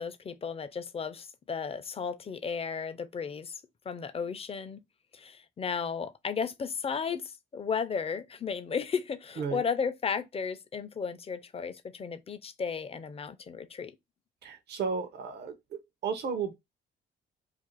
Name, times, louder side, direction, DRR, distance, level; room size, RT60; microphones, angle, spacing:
voice 1, 0.0-4.8 5.1-13.9, left 6 dB, 30° left, 0.5 m, -34 dB
voice 2, 14.4-16.5, right 5 dB, 55° right, 0.6 m, -34 dB
2.5 x 2.4 x 3.9 m
cardioid pair, 90°, 20 cm